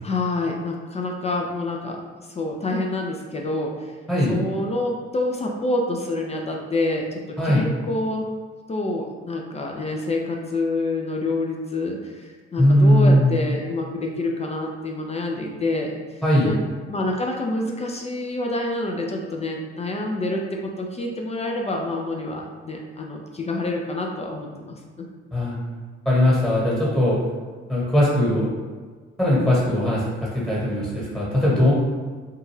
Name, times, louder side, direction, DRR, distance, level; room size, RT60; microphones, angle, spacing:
voice 1, 0.0-2.0 2.4-3.9 4.3-8.3 8.7-15.9 16.4-16.6 16.9-24.8, left 2 dB, 20° left, 0 dB, 0.4 m, -27 dB
voice 2, 12.6-13.3 16.2-16.5 25.3-25.6 26.0-27.2 27.7-28.5 29.2-30.0 30.3-31.7, left 1 dB, ahead, -7 dB, 1.2 m, -19 dB
2.6 x 2.3 x 3.1 m, 1.5 s
figure-of-eight pair, 45°, 35 cm